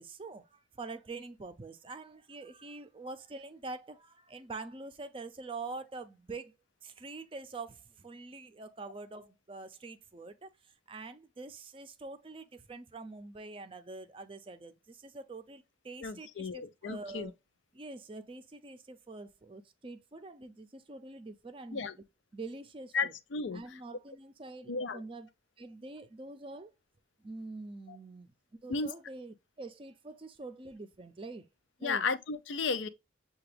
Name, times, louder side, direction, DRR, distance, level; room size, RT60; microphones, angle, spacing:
voice 1, 0.0-6.5 6.8-17.3 17.7-21.9 22.3-23.1 23.5-25.3 25.6-26.7 27.2-28.3 28.6-31.5 31.8-32.1, right 3 dB, 30° right, 0.5 m, -45 dB
voice 2, 16.0-17.3 21.7-21.9 22.9-23.6 24.7-25.0 27.9-28.0 28.7-28.9 31.8-32.9, left 4 dB, 75° left, 0.5 m, -34 dB
6.8 x 2.3 x 3.2 m
head